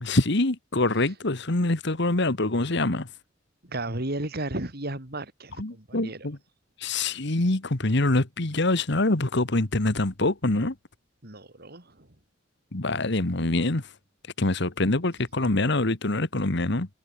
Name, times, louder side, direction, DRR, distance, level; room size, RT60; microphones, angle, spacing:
voice 1, 0.0-3.1 5.6-6.4 6.8-10.7 12.7-13.8 14.4-16.9, left 2 dB, 65° left, 1.8 m, -25 dB
voice 2, 3.6-6.3 11.2-12.1, right 1 dB, 55° right, 4.1 m, -34 dB
head